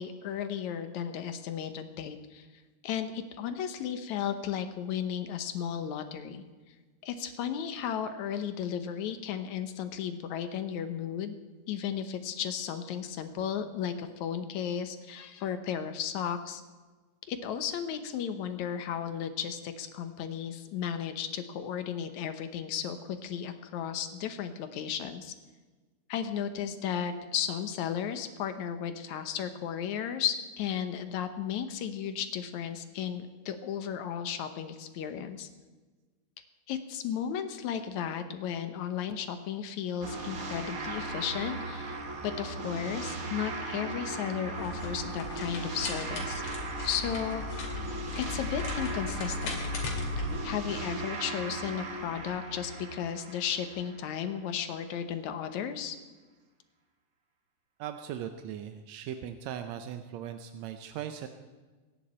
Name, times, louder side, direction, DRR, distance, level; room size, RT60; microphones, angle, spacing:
voice 1, 0.0-2.5 2.8-6.4 7.0-11.4 11.7-16.6 17.3-25.3 26.1-35.5 36.7-46.4 46.8-47.4 48.2-49.6 50.4-56.0, left 8 dB, 70° left, 9 dB, 2.1 m, -34 dB
sound 1, 40.0-54.3, right 3 dB, 55° right, 0.9 m, -38 dB
sound 2, 44.6-50.4, left 4 dB, 55° left, 3.4 m, -37 dB
voice 2, 57.8-61.3, right 9 dB, 75° right, 7 dB, 1.7 m, -39 dB
24.5 x 10.5 x 4.4 m, 1.3 s
omnidirectional pair, 3.8 m